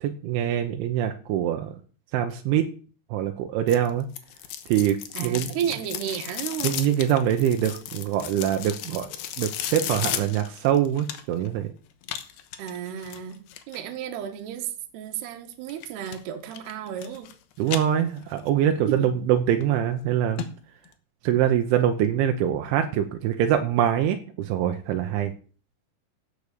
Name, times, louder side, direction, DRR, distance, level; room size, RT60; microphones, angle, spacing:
voice 1, 0.0-1.8 2.1-2.7 3.1-4.1 4.7-5.5 6.6-11.7 17.6-20.5 21.2-25.3, right 10 dB, 80° right, 6 dB, 3.2 m, -24 dB
sound 1, 3.7-11.5 12.0-13.8 15.7-16.2 16.5-17.3 17.6-18.5 18.9-19.0 19.6-19.7 20.0-20.1 20.4-20.5 20.8-20.9, left 11 dB, 70° left, 2.4 m, -34 dB
voice 2, 5.1-6.8 12.6-13.4 13.7-17.3 18.9-19.1, right 9 dB, 65° right, 7 dB, 3.2 m, -33 dB
15.5 x 6.6 x 6.7 m, 0.41 s
omnidirectional pair, 5.6 m